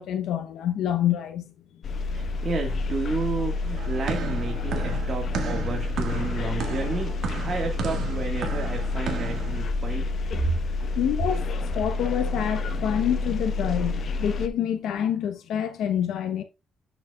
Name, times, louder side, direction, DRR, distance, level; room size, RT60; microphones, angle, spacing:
voice 1, 0.0-1.4 11.0-16.4, left 10 dB, 80° left, 0.8 m, -27 dB
sound 1, 1.8-14.5, left 3 dB, 55° left, 1.0 m, -29 dB
voice 2, 2.1-10.1, right 4 dB, 45° right, 1.6 m, -32 dB
sound 2, 3.2-5.6 5.9-6.3 6.6-10.5, left 1 dB, 15° left, 5.1 m, -52 dB
sound 3, 3.8-9.6, right 5 dB, 70° right, 1.6 m, -34 dB
10.5 x 6.0 x 2.3 m
cardioid pair, 90°, 0 cm